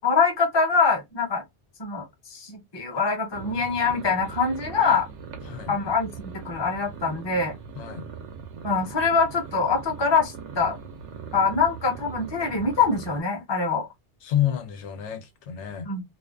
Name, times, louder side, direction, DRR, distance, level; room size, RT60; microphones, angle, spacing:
voice 1, 0.0-1.4 1.8-5.1 5.7-7.5 8.6-10.8 11.3-13.9 15.9-16.0, left 5 dB, 30° left, 0.6 m, -24 dB
sound 1, 3.3-13.2, right 6 dB, 85° right, 0.9 m, -40 dB
voice 2, 5.4-5.8 7.7-8.1 14.2-15.9, left 11 dB, 85° left, 0.9 m, -29 dB
2.5 x 2.3 x 2.3 m
omnidirectional pair, 1.2 m